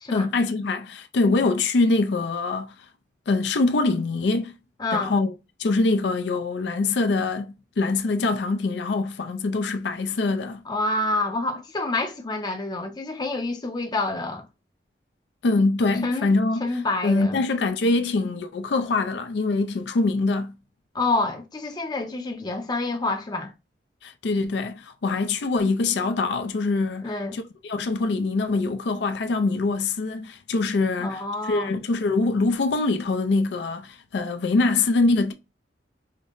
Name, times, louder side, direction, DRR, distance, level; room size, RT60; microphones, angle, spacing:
voice 1, 0.1-2.7 3.3-4.5 4.9-5.3 5.6-10.6 15.4-16.7 17.0-20.5 24.0-35.3, left 3 dB, 70° left, 0.4 m, -24 dB
voice 2, 4.8-5.1 10.7-14.5 16.0-16.3 16.6-17.4 20.9-23.5 27.0-27.4 31.0-31.7, left 2 dB, 25° left, 0.6 m, -27 dB
5.1 x 2.1 x 2.5 m
head